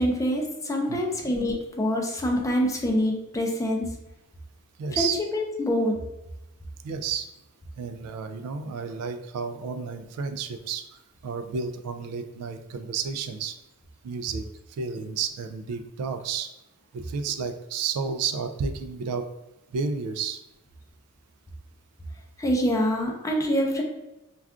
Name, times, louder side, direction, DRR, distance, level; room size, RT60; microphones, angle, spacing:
voice 1, 0.0-3.9 4.9-5.9 22.4-23.8, equal, 15° left, 0 dB, 0.4 m, -25 dB
voice 2, 4.8-5.2 6.8-7.3 7.8-10.8 11.2-13.6 14.0-14.4 14.8-16.5 16.9-19.3 19.7-20.4, right 5 dB, 85° right, 12 dB, 0.3 m, -31 dB
2.3 x 2.3 x 3.6 m, 0.94 s
head